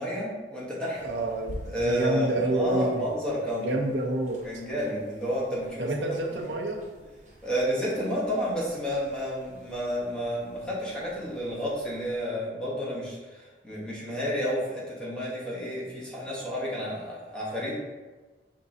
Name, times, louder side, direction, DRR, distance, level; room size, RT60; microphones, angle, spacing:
voice 1, 0.0-1.0 1.6-3.8 4.4-6.4 7.4-17.9, equal, 5° left, -7 dB, 1.2 m, -31 dB
sound 1, 0.9-12.3, right 1 dB, 45° right, 0.8 m, -49 dB
voice 2, 1.0-3.1 3.6-4.4 5.8-6.8, right 2 dB, 85° right, 0 dB, 0.8 m, -28 dB
5.3 x 3.7 x 2.7 m, 1.3 s
head